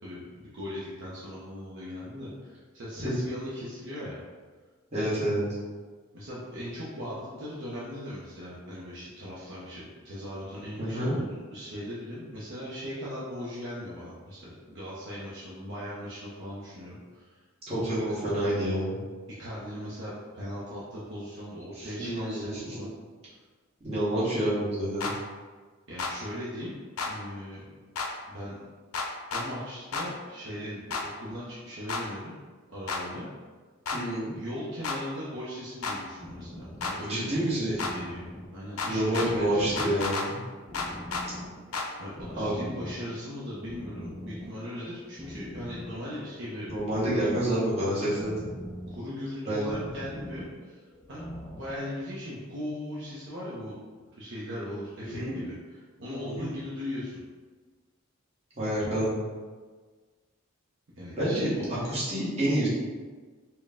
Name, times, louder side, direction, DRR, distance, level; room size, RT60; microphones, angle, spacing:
voice 1, 0.0-4.2 6.1-17.4 17.7-18.2 19.3-22.9 25.9-26.7 27.0-27.7 28.3-28.6 29.3-32.3 32.7-33.3 34.3-38.2 38.5-39.9 41.9-46.7 47.3-47.4 48.9-51.2 51.5-53.7 54.1-57.2 60.9-61.9, equal, 55° right, -8 dB, 0.7 m, -39 dB
voice 2, 4.9-5.4 10.8-11.2 17.7-19.0 21.7-22.9 23.8-25.1 33.9-34.3 37.1-37.8 38.8-40.4 42.4-42.6 46.6-48.5 49.5-49.8 55.0-55.4 56.3-56.5 58.6-59.2 61.1-62.7, right 1 dB, 30° right, -9 dB, 1.3 m, -28 dB
sound 1, 25.0-25.1 26.0-26.1 27.0-27.1 28.0-28.1 28.9-29.5 29.9-30.1 30.9-31.0 31.9-32.0 32.9-33.0 33.9-34.0 34.8-35.0 35.8-36.0 36.8-37.0 37.8-37.9 38.8-39.3 39.8-40.3 40.7-41.3 41.7-41.9, left 4 dB, 80° left, 0.5 m, -31 dB
sound 2, 36.2-51.8, left 1 dB, 15° left, 0.3 m, -44 dB
4.3 x 2.2 x 3.5 m, 1.4 s
head